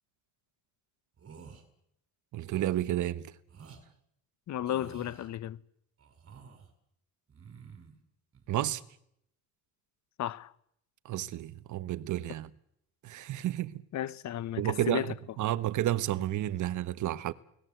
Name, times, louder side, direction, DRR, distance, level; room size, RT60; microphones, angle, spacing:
sound 1, 1.2-1.6 2.4-2.8 3.5-3.8 4.6-5.3 6.0-6.7 7.3-8.0 8.3-8.7, right 6 dB, 50° right, 6.0 m, -50 dB
voice 1, 2.3-3.3 8.5-8.8 11.0-12.5 13.0-13.8 14.6-17.3, right 13 dB, 80° right, 1.3 m, -31 dB
voice 2, 4.5-5.6 10.2-10.5 13.9-15.1, left 11 dB, 65° left, 1.1 m, -34 dB
29.5 x 19.5 x 8.0 m
cardioid pair, 90°, 30 cm